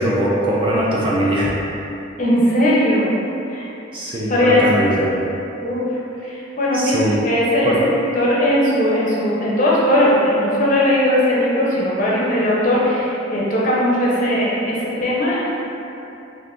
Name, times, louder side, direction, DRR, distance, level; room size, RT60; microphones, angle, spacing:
voice 1, 0.0-1.5 3.9-5.3 6.7-7.2 7.7-7.8, right 1 dB, 25° right, -5 dB, 0.3 m, -20 dB
voice 2, 2.2-3.1 3.5-3.7 4.3-4.7 5.6-5.8 6.2-15.5, left 1 dB, 40° left, -6 dB, 0.6 m, -18 dB
2.6 x 2.5 x 3.4 m, 2.9 s
head